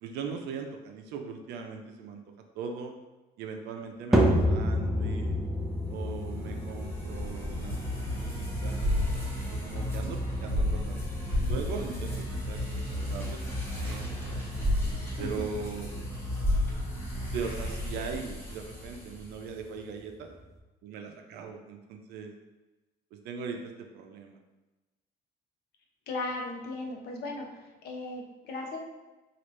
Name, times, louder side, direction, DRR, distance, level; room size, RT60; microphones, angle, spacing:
voice 1, 0.0-2.2 2.6-2.9 3.4-5.4 5.9-9.0 9.5-11.0 11.4-14.6 15.2-15.9 16.9-17.1 17.3-20.3 20.8-22.3 23.1-24.4, right 5 dB, 80° right, 4 dB, 0.5 m, -40 dB
sound 1, 4.1-20.6, equal, ahead, 0.4 m, -33 dB
sound 2, 6.1-19.5, left 1 dB, 15° left, 0.9 m, -32 dB
voice 2, 26.1-27.5 27.8-28.8, left 2 dB, 70° left, 1 dB, 0.7 m, -36 dB
3.2 x 2.4 x 3.0 m, 1.1 s
cardioid pair, 110°, 17 cm